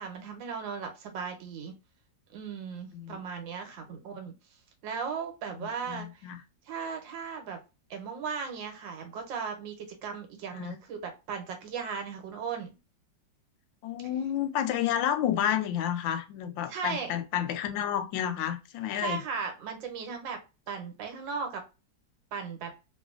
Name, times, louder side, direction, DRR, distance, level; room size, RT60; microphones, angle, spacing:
voice 1, 0.0-1.7 2.3-4.3 4.8-6.3 6.7-7.6 7.9-12.7 16.7-17.1 19.0-20.4 20.7-21.6 22.3-22.7, right 6 dB, 90° right, 1.6 m, -37 dB
voice 2, 5.6-6.4 10.5-10.7 13.8-19.2, left 10 dB, 90° left, 1.3 m, -30 dB
3.1 x 2.6 x 2.4 m
omnidirectional pair, 2.0 m